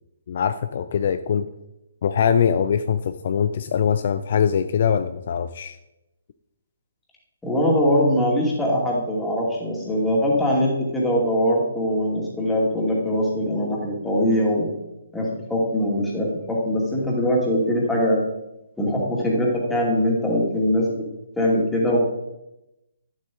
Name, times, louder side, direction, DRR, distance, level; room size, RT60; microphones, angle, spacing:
voice 1, 0.3-1.5 2.0-5.8, left 7 dB, 45° left, 10 dB, 0.4 m, -22 dB
voice 2, 7.4-14.7 15.1-18.2 18.8-21.0 21.4-22.0, equal, 5° left, -3 dB, 2.4 m, -22 dB
11.5 x 7.5 x 3.6 m, 0.92 s
figure-of-eight pair, 135°, 0 cm